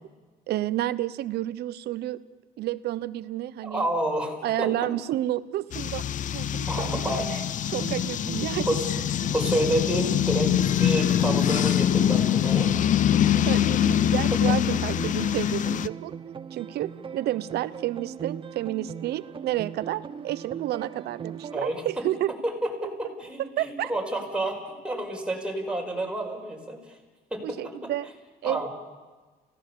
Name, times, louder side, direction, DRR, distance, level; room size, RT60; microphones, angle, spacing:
voice 1, 0.5-2.2 2.6-3.9 4.4-6.0 6.3-8.8 13.4-16.1 16.5-22.3 23.6-23.9 27.4-28.1 28.4-28.7, right 14 dB, 70° right, 15 dB, 0.9 m, -30 dB
voice 2, 3.6-4.7 6.7-7.4 8.7-8.8 9.3-12.7 14.5-14.6 21.5-22.0 22.4-26.9 27.3-27.9 28.4-28.7, right 1 dB, 5° right, 1 dB, 5.2 m, -29 dB
sound 1, 5.7-15.9, left 10 dB, 50° left, 0.6 m, -24 dB
sound 2, 7.8-21.6, right 7 dB, 30° right, 0.7 m, -39 dB
29.5 x 17.0 x 7.1 m, 1.3 s
cardioid pair, 110°, 17 cm